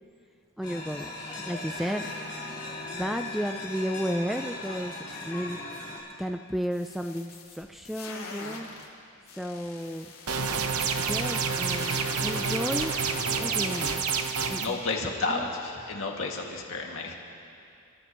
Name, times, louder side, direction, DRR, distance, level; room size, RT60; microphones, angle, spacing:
sound 1, 0.6-6.0, left 2 dB, 20° left, 3.9 m, -38 dB
voice 1, 0.6-2.1 2.9-5.6 6.2-9.0 9.3-10.1 10.9-13.0 13.4-14.1 14.5-15.5, equal, ahead, 6 dB, 0.3 m, -33 dB
sound 2, 6.6-8.8 9.2-13.9, left 3 dB, 85° left, 3.3 m, -41 dB
sound 3, 10.3-14.7, right 5 dB, 85° right, 0.9 m, -28 dB
voice 2, 14.6-17.1, left 3 dB, 65° left, -1 dB, 2.1 m, -31 dB
29.5 x 14.0 x 3.1 m, 2.5 s
head